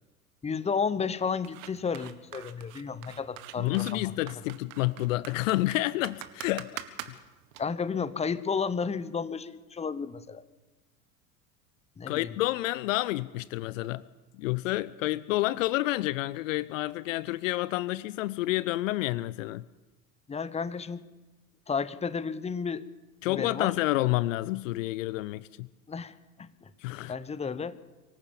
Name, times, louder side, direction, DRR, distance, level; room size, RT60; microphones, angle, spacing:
voice 1, 0.4-4.3 7.6-10.4 12.0-12.3 20.3-21.1 21.7-22.9 23.3-23.7 25.9-26.7 27.1-27.8, left 5 dB, 15° left, 16 dB, 1.0 m, -32 dB
sound 1, 1.4-7.6, right 14 dB, 60° right, 1.8 m, -43 dB
voice 2, 3.6-6.7 7.1-7.2 12.1-14.0 14.3-19.7 23.2-25.7 26.8-27.1, left 18 dB, 60° left, 19 dB, 0.7 m, -29 dB
24.5 x 15.0 x 7.1 m, 1.2 s
figure-of-eight pair, 80°, 44 cm